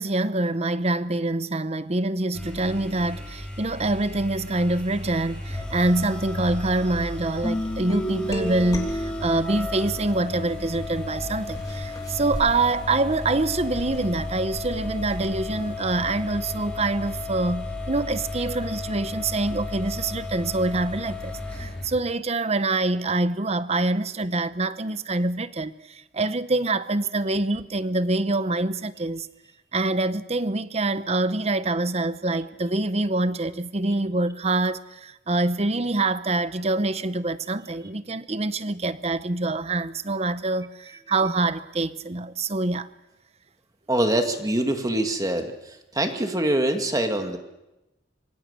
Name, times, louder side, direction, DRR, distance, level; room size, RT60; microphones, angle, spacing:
voice 1, 0.0-29.3 29.7-42.9, right 2 dB, 35° right, 0.9 m, -25 dB
sound 1, 2.3-21.9, left 2 dB, 5° left, 6.6 m, -34 dB
sound 2, 7.4-9.8 10.5-15.8, equal, 20° left, 3.2 m, -33 dB
voice 2, 43.9-45.5 45.9-47.4, right 1 dB, 20° right, 2.1 m, -24 dB
26.5 x 24.5 x 6.8 m
head